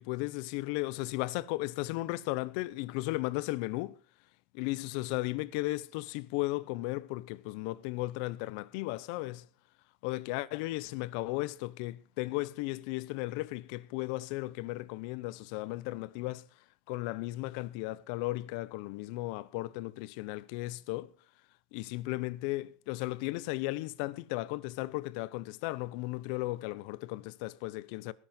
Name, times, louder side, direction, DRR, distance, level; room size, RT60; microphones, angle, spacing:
voice 1, 0.0-4.0 4.5-9.5 10.0-21.1 21.7-28.1, left 20 dB, 60° left, 0.9 m, -35 dB
18.5 x 11.0 x 4.5 m
supercardioid pair, 150°, 5 cm